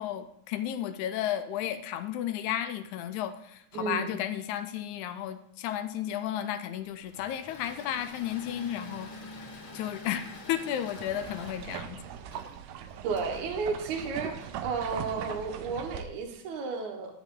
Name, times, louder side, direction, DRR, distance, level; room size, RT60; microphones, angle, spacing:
voice 1, 0.0-9.1 9.7-12.0, left 11 dB, 80° left, 10 dB, 1.9 m, -33 dB
voice 2, 3.7-4.1 13.0-17.1, right 5 dB, 70° right, 3 dB, 2.5 m, -33 dB
Engine / Mechanisms, 7.0-15.4, left 2 dB, 50° left, 1.8 m, -47 dB
sound 1, 11.0-16.0, right 9 dB, 85° right, 2.2 m, -40 dB
11.0 x 7.2 x 3.7 m, 0.76 s
omnidirectional pair, 3.7 m